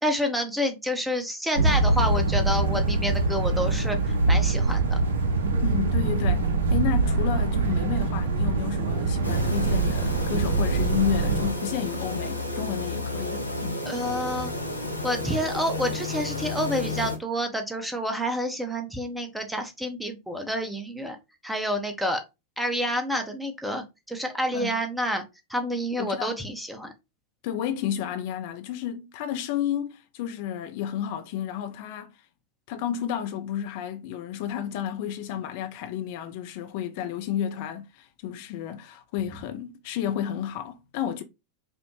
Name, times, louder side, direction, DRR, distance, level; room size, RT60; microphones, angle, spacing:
voice 1, 0.0-5.0 13.8-14.5 15.0-21.2 21.4-22.2 22.6-25.2 25.5-26.9, equal, 5° right, 0.7 m, -28 dB
sound 1, 1.6-11.5, right 3 dB, 65° right, 0.5 m, -24 dB
voice 2, 5.6-13.8 24.5-24.8 26.0-26.4 27.4-32.2 32.7-41.2, left 10 dB, 45° left, 0.4 m, -31 dB
sound 2, 9.2-17.2, left 2 dB, 85° right, 0.8 m, -32 dB
5.1 x 2.1 x 3.0 m
figure-of-eight pair, 90°, 0 cm